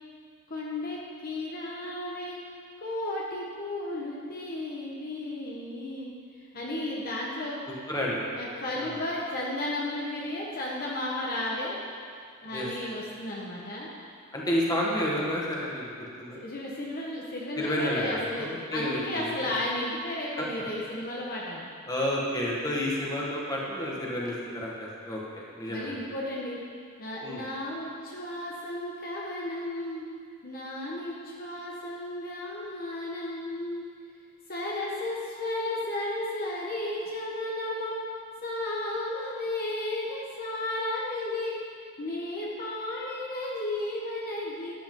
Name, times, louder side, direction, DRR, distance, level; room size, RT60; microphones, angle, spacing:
voice 1, 0.5-2.4 2.8-6.1 6.5-7.6 8.3-11.8 12.4-13.9 16.3-21.7 25.7-26.6 27.0-30.0 30.4-33.8 34.5-38.0 38.4-41.5 42.0-44.7, left 1 dB, 45° left, -4 dB, 1.4 m, -33 dB
voice 2, 7.9-8.2 8.8-9.0 12.5-12.7 14.3-15.9 16.2-16.4 17.6-19.3 20.4-20.5 21.9-26.0 27.2-27.4, equal, 15° left, -4 dB, 1.7 m, -30 dB
13.0 x 10.5 x 3.9 m, 2.2 s
head